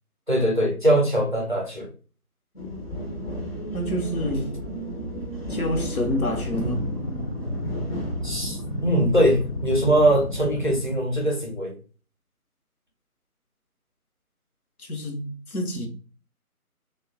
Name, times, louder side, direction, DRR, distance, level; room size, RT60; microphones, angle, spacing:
voice 1, 0.3-1.9 8.2-11.7, right 1 dB, 35° right, 0.6 m, -22 dB
sound 1, 2.6-10.8, equal, 40° left, 0.7 m, -34 dB
voice 2, 3.7-4.6 5.5-6.9 14.8-15.9, equal, 70° left, 0.9 m, -28 dB
sound 2, 5.8-11.0, left 1 dB, 85° left, 1.1 m, -32 dB
2.7 x 2.2 x 2.4 m
figure-of-eight pair, 160°, 45 cm